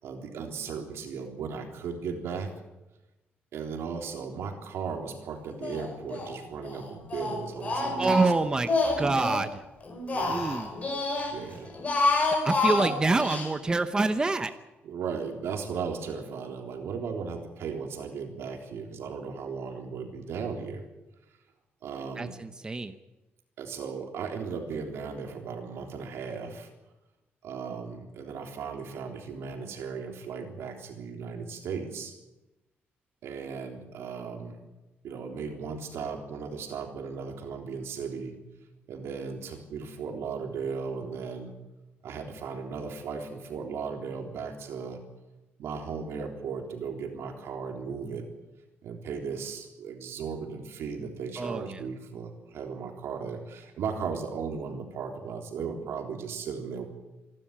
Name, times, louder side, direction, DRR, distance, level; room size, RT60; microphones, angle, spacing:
voice 1, 0.0-2.5 3.5-8.2 10.1-10.5 11.3-11.7 14.8-20.8 21.8-22.4 23.6-26.7 27.4-32.1 33.2-34.6 35.0-38.4 38.9-41.5 42.0-45.0 45.6-48.3 48.8-56.9, right 5 dB, 85° right, 3 dB, 3.7 m, -36 dB
Speech, 5.6-6.3 6.6-9.4 9.8-11.3 11.7-13.5, left 3 dB, 35° left, 5.1 m, -28 dB
voice 2, 8.0-8.7 9.0-9.6 10.3-10.7 12.4-14.5 22.2-22.9 51.4-51.8, right 3 dB, 20° right, 9 dB, 0.9 m, -26 dB
26.5 x 12.5 x 8.9 m, 1.0 s
cardioid pair, 150°, 4 cm